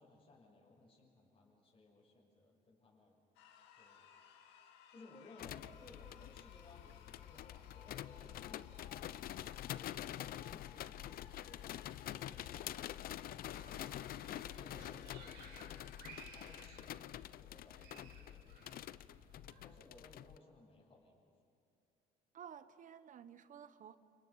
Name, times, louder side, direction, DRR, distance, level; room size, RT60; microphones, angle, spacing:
voice 1, 0.0-3.2 3.8-4.1 4.9-9.1 9.6-11.8 12.2-13.7 14.1-15.9 16.3-18.9 19.6-21.2, left 2 dB, 30° left, -3 dB, 6.4 m, -61 dB
sound 1, 3.4-16.7, left 8 dB, 90° left, 2.1 m, -62 dB
sound 2, 5.4-20.4, left 12 dB, 60° left, 0.6 m, -47 dB
sound 3, 13.5-19.8, right 5 dB, 90° right, 5.2 m, -59 dB
voice 2, 22.3-24.0, right 8 dB, 50° right, 12 dB, 1.2 m, -53 dB
30.0 x 28.5 x 5.9 m, 2.4 s
cardioid pair, 110°, 17 cm